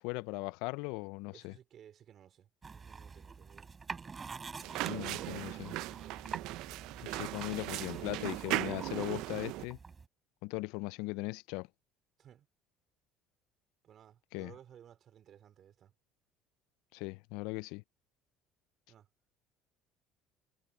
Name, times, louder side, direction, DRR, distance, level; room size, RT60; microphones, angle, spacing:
voice 1, 0.0-1.5 4.9-5.7 7.0-9.8 10.4-11.7 14.3-14.5 16.9-17.8, left 24 dB, 75° left, 0.5 m, -39 dB
voice 2, 1.3-3.7 4.9-6.3 12.2-12.5 13.8-15.9 18.9-19.1, right 10 dB, 50° right, 4.3 m, -57 dB
sound 1, 2.6-10.1, right 5 dB, 30° right, 3.6 m, -47 dB
sound 2, 4.6-9.7, right 18 dB, 70° right, 0.7 m, -38 dB
hypercardioid pair, 75°, 0 cm